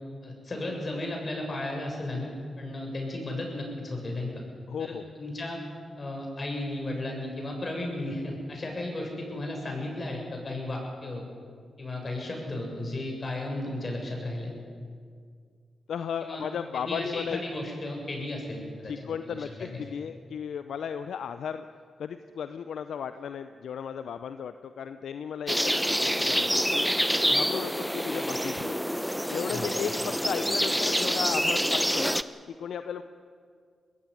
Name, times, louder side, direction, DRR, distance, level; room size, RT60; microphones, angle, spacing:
voice 1, 0.2-2.3 2.6-4.4 4.8-5.6 6.0-11.3 11.8-14.5 16.2-16.4 16.7-19.3 19.6-19.8 29.5-29.7, left 1 dB, 45° left, 1 dB, 7.5 m, -34 dB
voice 2, 4.7-5.1 15.9-17.4 18.8-21.7 22.0-25.7 26.0-26.9 27.2-28.8 29.3-32.1 32.5-33.0, left 7 dB, 75° left, 10 dB, 0.6 m, -35 dB
sound 1, 25.5-32.2, equal, ahead, 0.9 m, -27 dB
20.5 x 16.0 x 9.8 m, 2.1 s
supercardioid pair, 45°, 0 cm